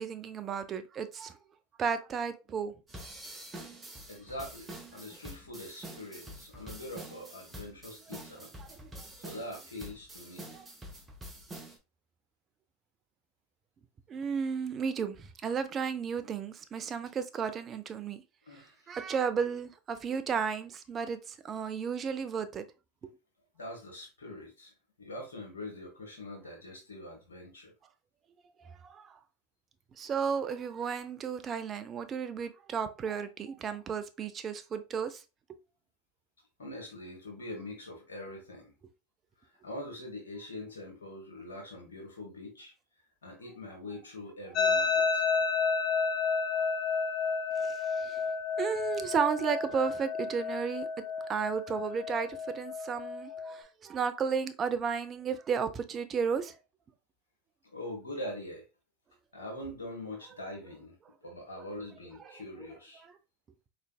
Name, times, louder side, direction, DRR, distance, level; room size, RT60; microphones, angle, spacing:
voice 1, 0.0-1.4 1.8-2.8 8.1-8.2 8.6-9.1 10.5-10.6 14.1-18.2 18.9-22.6 23.0-23.1 28.6-29.2 30.0-35.2 35.5-35.6 47.6-48.2 48.6-50.9 51.3-56.6 61.6-61.7 62.2-62.7 63.0-63.1, right 6 dB, 35° right, 0.5 m, -33 dB
sound 1, 2.9-11.8, right 1 dB, 15° right, 1.1 m, -47 dB
voice 2, 4.1-8.5 9.2-10.5 18.5-18.9 23.6-24.7 25.0-27.7 36.6-38.7 39.6-42.7 43.2-45.3 57.7-58.7 59.3-60.9 61.2-63.1, left 1 dB, 85° left, 1.2 m, -43 dB
sound 2, 44.6-53.6, left 5 dB, 45° left, 0.8 m, -31 dB
3.8 x 3.3 x 2.3 m
hypercardioid pair, 90°, 0 cm